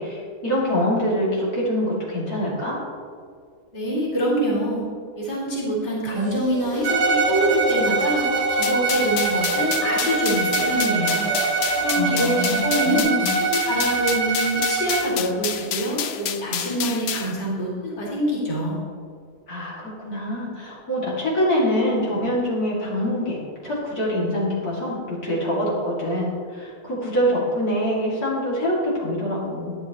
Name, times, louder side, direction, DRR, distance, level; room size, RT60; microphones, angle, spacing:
voice 1, 0.0-2.8 12.0-13.4 19.5-23.4 23.6-29.8, equal, 70° left, -6 dB, 2.9 m, -25 dB
voice 2, 3.7-4.8 5.2-8.2 8.5-11.3 11.8-13.1 13.5-18.8, right 1 dB, 30° left, -6 dB, 2.4 m, -25 dB
sound 1, 6.1-13.0, right 1 dB, 30° right, 1.3 m, -30 dB
Bowed string instrument, 6.8-15.2, right 4 dB, 55° right, 1.2 m, -24 dB
sound 2, 8.6-17.3, left 9 dB, 90° left, 0.5 m, -29 dB
11.5 x 10.0 x 3.0 m, 2.2 s
omnidirectional pair, 1.7 m